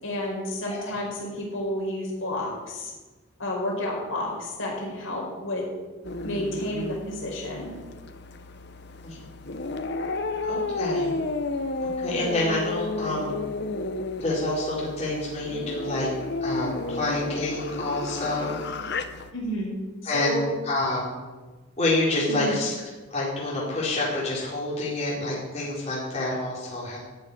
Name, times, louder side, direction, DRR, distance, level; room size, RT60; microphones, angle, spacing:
voice 1, 0.0-2.9 3.4-5.6 6.2-7.7 19.3-19.7 20.0-20.5 22.3-22.6, left 1 dB, 70° left, -2 dB, 5.0 m, -31 dB
voice 2, 0.7-1.0 9.0-9.2 10.5-11.1 12.0-13.4 14.2-16.1 16.4-18.6 20.0-21.2 21.8-22.7 23.1-27.0, left 2 dB, 30° left, -6 dB, 4.2 m, -28 dB
sound 1, 6.0-19.3, left 3 dB, 50° left, 0.8 m, -32 dB
13.5 x 6.8 x 9.8 m, 1.3 s
head